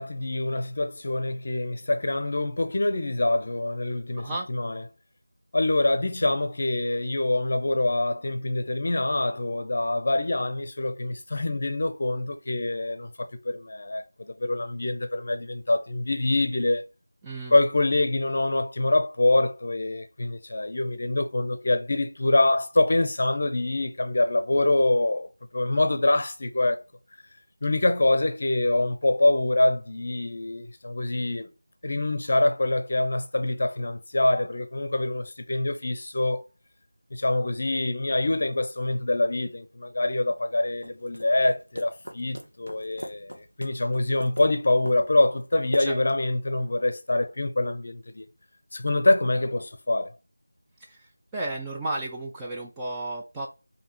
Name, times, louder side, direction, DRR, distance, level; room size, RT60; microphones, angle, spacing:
voice 1, 0.0-4.8 5.5-16.8 17.5-25.3 25.5-26.8 27.6-31.5 31.8-36.4 37.1-48.2 48.7-50.1, left 2 dB, 40° left, 0.6 m, -25 dB
voice 2, 4.2-4.5 17.2-17.6 45.8-46.0 50.8-53.5, right 2 dB, 10° right, 0.3 m, -33 dB
sound 1, 40.8-46.3, equal, 85° right, 1.0 m, -41 dB
4.4 x 2.7 x 2.9 m
figure-of-eight pair, 170°, 0 cm